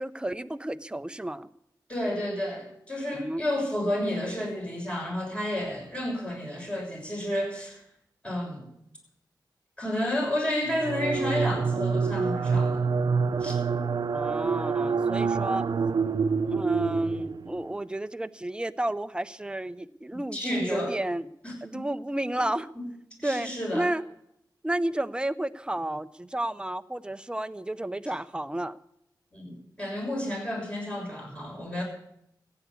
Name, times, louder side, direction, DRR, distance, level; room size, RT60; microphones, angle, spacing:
voice 1, 0.0-1.5 3.1-3.4 14.1-15.6 16.5-21.3 21.6-22.7 23.2-24.0 24.6-28.8, right 1 dB, 10° right, 13 dB, 0.6 m, -31 dB
voice 2, 1.9-7.8 8.2-8.6 9.8-12.9 13.4-13.5 20.3-21.0 21.4-21.8 22.4-22.5 22.7-22.8 23.2-23.9 29.3-31.8, left 1 dB, 15° left, 0 dB, 6.6 m, -31 dB
sound 1, 10.7-17.6, right 5 dB, 65° right, 0.6 m, -27 dB
15.0 x 9.7 x 8.4 m, 0.77 s
wide cardioid pair, 80°, 8 cm